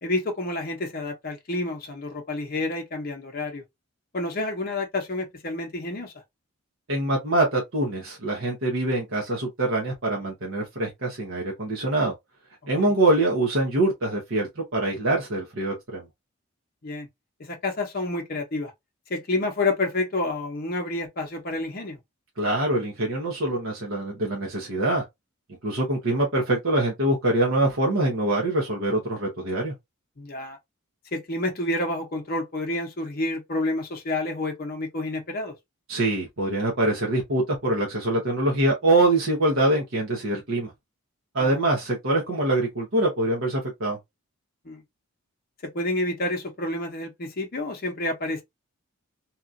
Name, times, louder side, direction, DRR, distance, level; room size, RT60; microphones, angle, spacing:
voice 1, 0.0-3.6 4.1-6.1 12.8-12.9 16.8-17.1 17.4-18.7 19.1-22.0 30.2-30.6 31.1-35.5 41.4-41.6 44.6-44.8 45.6-48.4, left 2 dB, 45° left, 0.7 m, -29 dB
voice 2, 6.9-12.1 12.7-16.1 22.4-25.0 25.6-29.7 35.9-40.7 41.3-44.0, right 2 dB, 60° right, 0.8 m, -24 dB
2.9 x 2.4 x 2.5 m
head